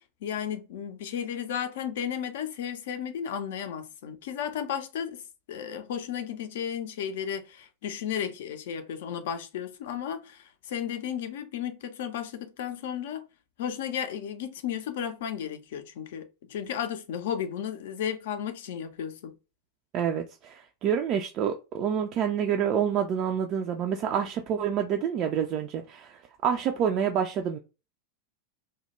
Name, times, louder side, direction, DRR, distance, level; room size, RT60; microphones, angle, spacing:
voice 1, 0.2-5.2 5.5-13.3 13.6-19.4, left 9 dB, 55° left, 0.4 m, -34 dB
voice 2, 19.9-27.6, right 8 dB, 35° right, 0.3 m, -28 dB
2.2 x 2.1 x 2.9 m
figure-of-eight pair, 90°, 0 cm